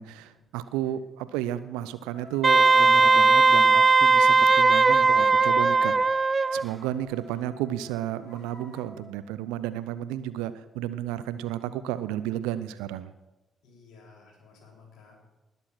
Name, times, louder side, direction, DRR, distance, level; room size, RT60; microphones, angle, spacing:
voice 1, 0.0-6.2 6.5-13.1, right 12 dB, 75° right, 14 dB, 0.6 m, -32 dB
sound 1, 2.1-3.9 4.5-9.0, right 1 dB, 55° left, 4.2 m, -47 dB
Wind instrument woodwind instrument, 2.4-6.6, right 4 dB, 35° right, 0.4 m, -18 dB
voice 2, 13.6-15.2, left 4 dB, 70° left, -1 dB, 4.0 m, -54 dB
19.5 x 7.0 x 6.1 m, 1.1 s
hypercardioid pair, 40°, 0 cm